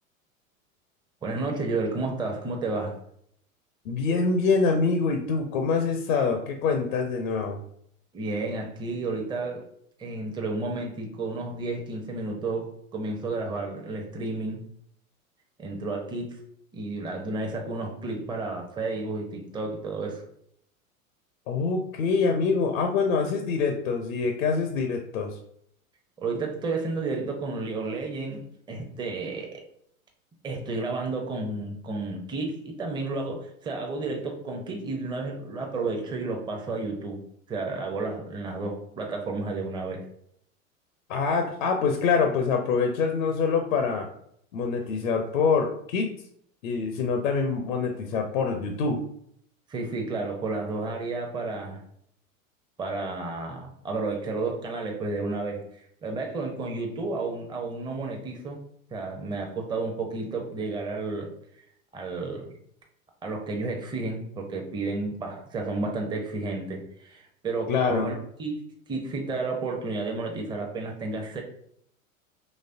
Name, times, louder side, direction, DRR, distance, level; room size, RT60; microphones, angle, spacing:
voice 1, 1.2-3.0 8.1-9.6 10.0-14.6 15.6-16.4 16.7-20.2 26.2-28.4 28.7-29.6 30.4-37.2 37.5-40.0 49.7-51.8 52.8-58.6 58.9-61.3 61.9-62.6 63.2-68.1 68.4-71.4, right 3 dB, 10° right, 1 dB, 0.6 m, -31 dB
voice 2, 3.9-7.6 21.5-25.4 41.1-44.1 44.5-46.1 46.6-49.0 67.7-68.1, left 5 dB, 65° left, 4 dB, 0.6 m, -25 dB
4.1 x 3.1 x 2.5 m, 0.70 s
figure-of-eight pair, 90°, 42 cm